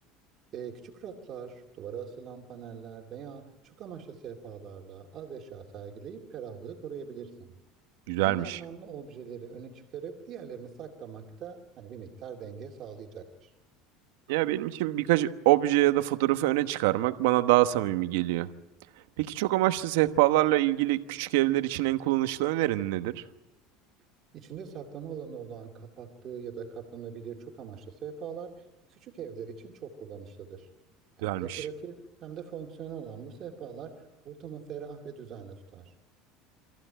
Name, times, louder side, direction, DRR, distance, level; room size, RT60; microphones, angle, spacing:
voice 1, 0.5-7.5 8.2-13.5 24.3-28.5 28.9-30.7 31.2-35.9, right 7 dB, 35° right, 1 dB, 2.5 m, -42 dB
voice 2, 8.1-8.6 14.3-18.5 19.2-23.2 31.2-31.6, right 16 dB, 80° right, 10 dB, 1.2 m, -25 dB
25.5 x 15.0 x 8.9 m, 1.0 s
cardioid pair, 155°, 0 cm